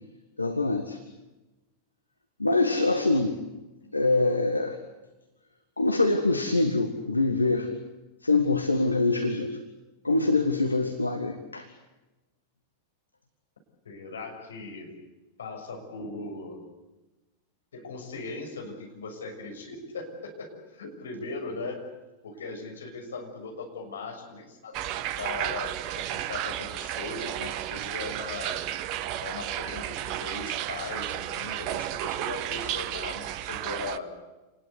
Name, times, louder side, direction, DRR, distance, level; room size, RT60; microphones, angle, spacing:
voice 1, 0.4-1.0 2.4-3.4 3.9-4.8 5.8-7.7 8.2-9.5 10.0-11.7, left 3 dB, 85° left, 6 dB, 1.7 m, -24 dB
voice 2, 13.8-14.9 15.4-16.6 17.7-21.8 22.2-24.8 25.2-28.6 29.2-34.1, left 3 dB, 70° left, 2 dB, 6.5 m, -39 dB
sound 1, 24.7-34.0, right 12 dB, 40° right, 1.0 m, -33 dB
28.0 x 20.5 x 8.0 m, 1.1 s
figure-of-eight pair, 90°, 0 cm